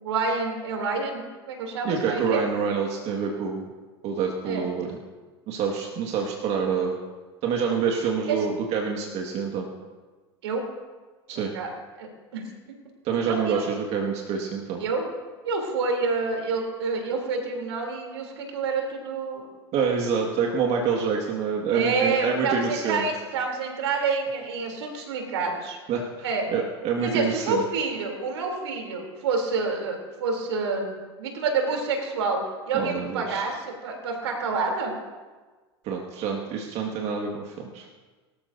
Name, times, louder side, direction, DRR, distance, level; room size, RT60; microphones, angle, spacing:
voice 1, 0.0-2.4 4.4-4.6 8.3-8.4 10.4-10.6 11.3-11.7 12.0-12.5 13.2-13.6 14.8-15.1 15.4-19.5 21.7-25.8 26.2-26.5 27.0-32.4 32.7-34.9, right 4 dB, 75° right, 2 dB, 3.4 m, -28 dB
voice 2, 1.8-3.7 4.0-5.0 5.5-7.0 7.4-9.7 11.3-11.5 13.0-14.8 19.7-23.1 25.9-27.6 32.7-33.5 35.8-37.9, right 6 dB, 50° right, 0 dB, 2.0 m, -27 dB
23.0 x 14.0 x 2.8 m, 1.3 s
hypercardioid pair, 80°, 14 cm